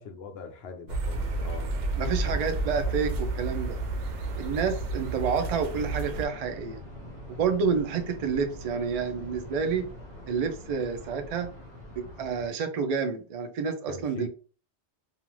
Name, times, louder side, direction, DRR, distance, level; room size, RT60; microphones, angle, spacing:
voice 1, 0.0-1.7 2.2-2.5 13.9-14.3, left 4 dB, 70° left, 0.8 m, -41 dB
sound 1, 0.9-6.3, right 2 dB, 85° right, 0.9 m, -31 dB
sound 2, 1.1-12.5, left 1 dB, 50° right, 1.3 m, -45 dB
voice 2, 2.0-3.8 4.3-6.8 7.3-9.8 10.3-11.5 12.0-14.3, right 6 dB, 70° right, 0.3 m, -29 dB
2.4 x 2.4 x 3.1 m
omnidirectional pair, 1.2 m